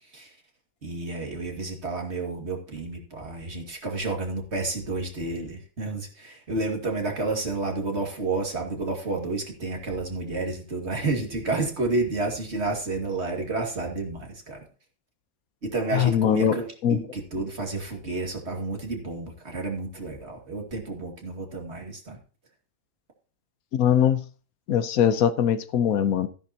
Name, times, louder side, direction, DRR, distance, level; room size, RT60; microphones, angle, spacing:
voice 1, 0.8-14.7 15.6-22.2, right 3 dB, 50° right, 2.5 m, -30 dB
voice 2, 15.9-16.6 16.8-17.0 23.7-24.2 24.7-26.3, left 9 dB, 90° left, 1.3 m, -21 dB
13.5 x 10.5 x 2.9 m
omnidirectional pair, 1.5 m